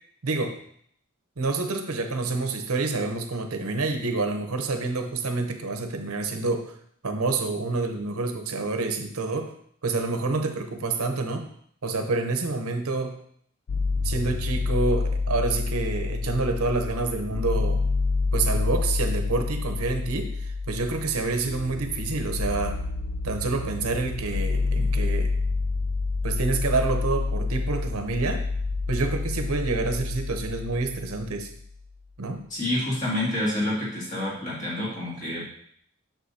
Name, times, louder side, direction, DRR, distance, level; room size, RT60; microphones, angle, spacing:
voice 1, 0.2-0.6 1.4-6.7 7.0-9.5 9.8-11.5 11.8-13.2 14.0-17.8 18.3-22.8 23.2-25.3 26.2-28.5 28.9-31.5 32.2-32.4, right 3 dB, 90° right, 5 dB, 0.9 m, -28 dB
sound 1, 13.7-31.6, left 3 dB, 90° left, 0.4 m, -28 dB
voice 2, 32.5-35.5, left 1 dB, 35° left, -6 dB, 2.3 m, -28 dB
6.7 x 6.3 x 2.8 m, 0.65 s
head